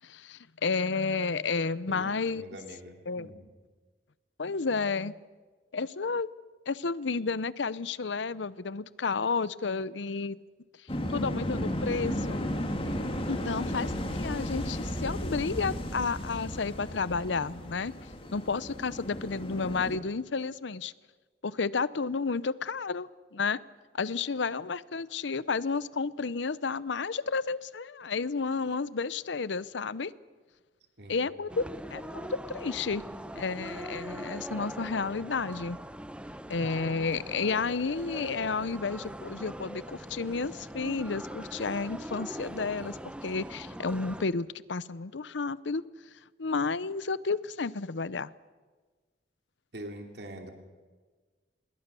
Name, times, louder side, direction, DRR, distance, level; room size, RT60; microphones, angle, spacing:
voice 1, 0.0-2.5 3.1-3.3 4.4-5.2 5.7-6.3 6.7-10.4 11.1-12.5 13.3-13.9 14.2-17.9 18.3-20.9 21.4-23.6 23.9-30.1 31.1-31.6 31.9-33.0 33.4-35.8 36.5-43.0 43.2-45.8 46.4-48.3, left 4 dB, 80° left, 18 dB, 0.7 m, -31 dB
voice 2, 1.9-3.5 31.0-31.3 49.7-50.5, right 1 dB, 65° right, 4 dB, 2.8 m, -44 dB
sound 1, 10.9-20.0, equal, 30° left, 2.6 m, -34 dB
sound 2, 31.5-44.3, equal, 5° right, 0.7 m, -41 dB
26.5 x 21.5 x 6.9 m, 1.4 s
head